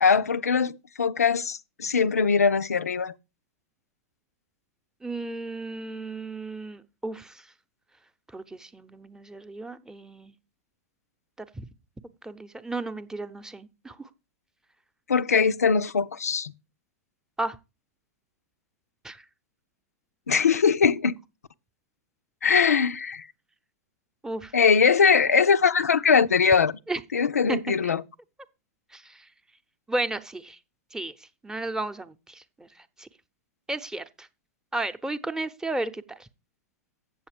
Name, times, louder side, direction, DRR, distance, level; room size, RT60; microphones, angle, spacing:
voice 1, 0.0-3.1 15.1-16.5 20.3-21.1 22.4-23.3 24.5-26.7 27.1-28.0, left 6 dB, 90° left, 0.4 m, -21 dB
voice 2, 5.0-7.5 8.3-10.3 11.4-11.7 12.2-14.1 17.4-17.6 19.0-19.2 24.2-24.5 26.9-27.0 27.5-27.9 28.9-29.3 29.9-30.6 30.9-33.1 33.7-34.3 34.7-36.3, right 2 dB, 5° right, 0.7 m, -34 dB
8.1 x 7.1 x 5.0 m
hypercardioid pair, 105°, 8 cm